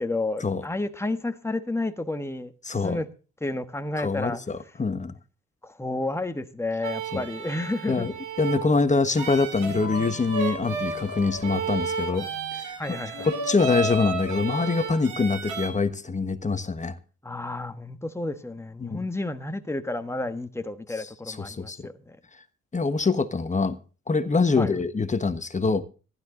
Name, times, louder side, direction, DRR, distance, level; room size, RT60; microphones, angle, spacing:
voice 1, 0.0-2.5 2.8-3.1 3.4-4.4 5.6-8.1 12.8-13.3 17.2-22.2 24.6-24.7, left 2 dB, 10° left, 1.4 m, -31 dB
voice 2, 2.6-3.0 4.0-5.1 7.1-7.2 7.9-17.0 18.8-19.0 21.0-21.9 22.7-23.8 24.1-25.8, left 4 dB, 25° left, 1.3 m, -25 dB
sound 1, 6.8-15.7, right 4 dB, 85° right, 3.6 m, -33 dB
sound 2, 9.6-15.3, left 7 dB, 55° left, 2.9 m, -42 dB
15.0 x 12.0 x 3.8 m
cardioid pair, 90°, 30 cm